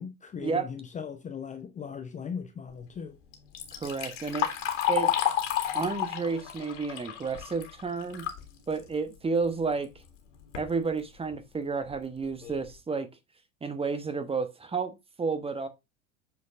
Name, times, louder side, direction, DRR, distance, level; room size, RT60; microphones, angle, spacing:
voice 1, 0.0-3.2, left 6 dB, 20° left, 0.7 m, -38 dB
Liquid, 3.3-8.4 8.8-8.9 9.8-9.9 10.3-10.7 11.3-11.4 11.9-12.0 12.4-12.7, left 11 dB, 65° left, 2.2 m, -31 dB
voice 2, 3.7-4.5 4.9-5.1 5.7-8.3 8.7-9.9 10.5-13.1 13.6-15.7, right 4 dB, 15° right, 1.1 m, -31 dB
8.2 x 4.6 x 3.6 m
figure-of-eight pair, 75°, 39 cm